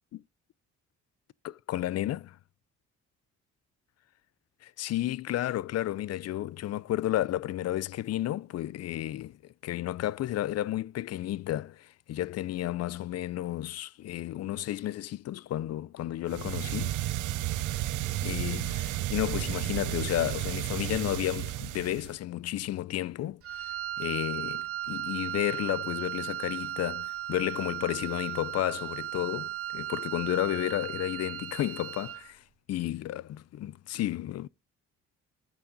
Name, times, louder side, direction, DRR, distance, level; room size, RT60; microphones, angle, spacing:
voice 1, 1.4-2.4 4.6-17.0 18.2-34.5, left 13 dB, 55° left, 0.5 m, -32 dB
sound 1, 16.3-22.2, right 14 dB, 80° right, 0.8 m, -32 dB
Wind instrument woodwind instrument, 23.4-32.3, right 13 dB, 50° right, 0.6 m, -36 dB
14.5 x 6.0 x 3.9 m
cardioid pair, 90°, 30 cm